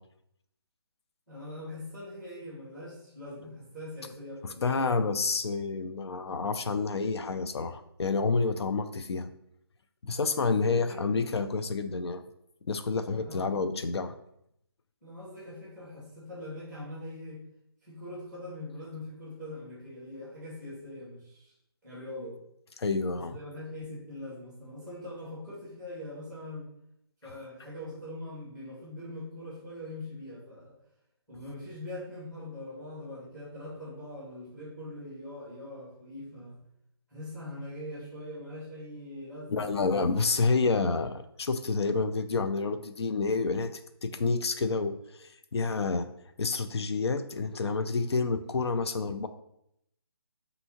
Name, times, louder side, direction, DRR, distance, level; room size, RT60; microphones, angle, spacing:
voice 1, 1.3-5.2 10.3-11.3 13.1-13.6 15.0-17.4 17.8-21.5 21.8-22.4 23.1-26.7 27.2-30.7 31.3-36.6 37.1-40.2, left 1 dB, 5° left, -6 dB, 1.0 m, -42 dB
voice 2, 4.6-9.3 10.0-12.2 12.7-14.1 22.8-23.4 39.5-43.7 44.0-46.1 46.4-49.3, left 4 dB, 80° left, 9 dB, 0.5 m, -29 dB
5.3 x 2.7 x 2.8 m, 0.77 s
hypercardioid pair, 170°, 13 cm